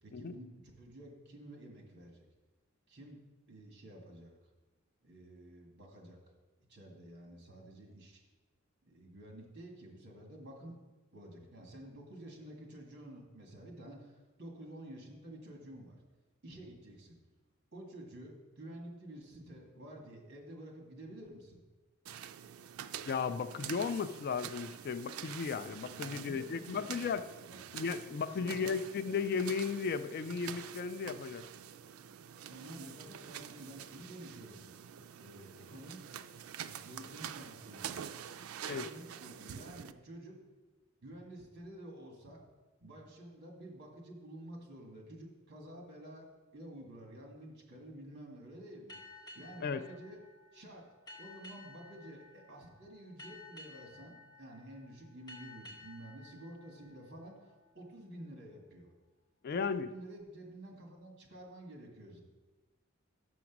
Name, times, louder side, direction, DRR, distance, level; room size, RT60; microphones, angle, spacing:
voice 1, 0.0-0.5 0.8-2.2 2.9-3.2 3.5-4.3 5.0-6.2 6.7-8.2 8.8-10.7 11.1-16.0 16.4-17.2 17.7-21.6 25.9-27.6 28.3-28.6 32.5-34.6 34.9-36.1 36.6-38.1 38.7-40.4 41.0-42.4 42.8-50.2 50.5-50.9 51.2-58.9 59.5-62.2, right 1 dB, 55° right, 1.9 m, -50 dB
sound 1, 22.1-39.9, right 9 dB, 80° right, 0.4 m, -47 dB
voice 2, 23.1-27.3 27.7-31.4 38.7-38.9 49.6-49.8 59.4-59.9, left 5 dB, 50° left, 0.3 m, -35 dB
sound 2, 48.9-58.0, left 2 dB, 20° left, 1.0 m, -55 dB
6.1 x 6.0 x 5.9 m
head